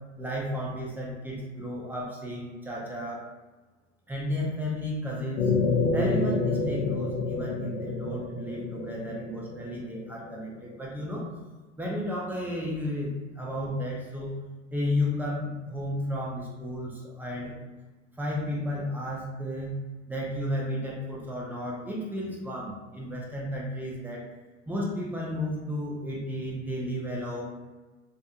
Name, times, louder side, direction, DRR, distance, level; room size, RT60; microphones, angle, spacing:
voice 1, 0.2-3.2 4.1-5.5 5.9-11.3 11.8-14.4 14.7-17.5 18.2-19.8 20.1-24.2 24.7-27.4, left 1 dB, 5° right, -4 dB, 0.7 m, -33 dB
sound 1, 5.4-10.4, left 3 dB, 80° left, 0.5 m, -28 dB
2.5 x 2.4 x 2.4 m, 1.2 s
hypercardioid pair, 80°, 37 cm